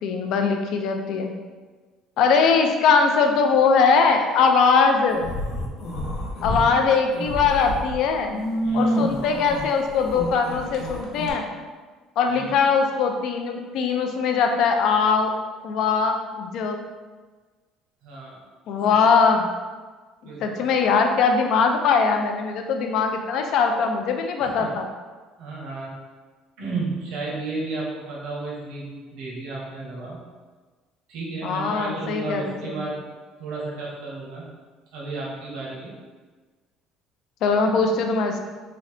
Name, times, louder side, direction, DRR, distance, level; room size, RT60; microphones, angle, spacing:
voice 1, 0.0-1.3 2.2-5.3 6.4-8.3 8.7-11.4 12.2-15.3 15.6-16.8 18.7-19.5 20.4-24.9 31.4-32.9 37.4-38.4, left 5 dB, 55° left, 4 dB, 0.4 m, -21 dB
sound 1, 5.1-6.7 7.0-11.3, equal, 75° left, 0.8 m, -28 dB
voice 2, 8.6-9.0 12.3-12.6 18.0-18.4 18.9-19.0 20.2-20.9 24.4-24.7 25.4-25.9 26.6-30.2 31.1-33.0 33.4-34.5 34.9-35.9, right 3 dB, 85° right, -5 dB, 1.1 m, -33 dB
3.9 x 2.8 x 3.3 m, 1.4 s
cardioid pair, 165°, 0 cm